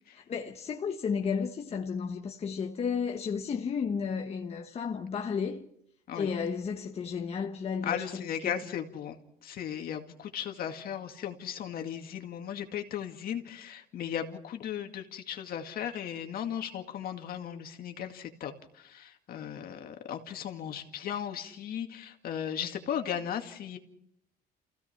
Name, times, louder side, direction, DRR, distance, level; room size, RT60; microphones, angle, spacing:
voice 1, 0.1-5.7 6.1-8.6, left 6 dB, 40° left, 1.3 m, -33 dB
voice 2, 7.8-9.2 9.4-23.8, left 9 dB, 60° left, 2.2 m, -36 dB
28.0 x 16.0 x 5.8 m
cardioid pair, 110°, 17 cm